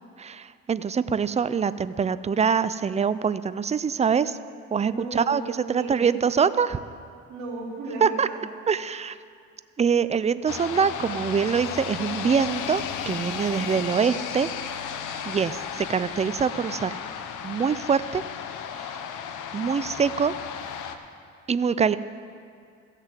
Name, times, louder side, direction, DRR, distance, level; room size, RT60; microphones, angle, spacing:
voice 1, 0.2-4.4 4.7-6.8 8.0-8.3 8.7-9.2 9.8-14.5 15.3-16.9 17.4-18.2 18.8-18.9 19.5-20.3 21.5-22.0, right 6 dB, 20° right, 15 dB, 0.4 m, -24 dB
voice 2, 4.8-6.1 7.3-8.4 21.9-22.0, right 2 dB, 70° right, -3 dB, 3.4 m, -35 dB
sound 1, 10.5-21.0, left 7 dB, 85° left, 0.9 m, -34 dB
15.5 x 6.6 x 7.5 m, 2.3 s
cardioid pair, 90°, 30 cm